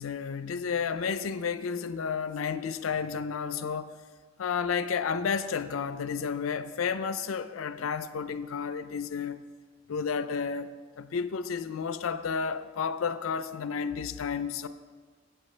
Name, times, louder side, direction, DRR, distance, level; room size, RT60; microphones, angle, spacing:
voice 1, 0.0-3.9 4.4-9.4 9.9-14.7, left 6 dB, 90° left, 0.5 m, -31 dB
13.0 x 7.7 x 3.2 m
head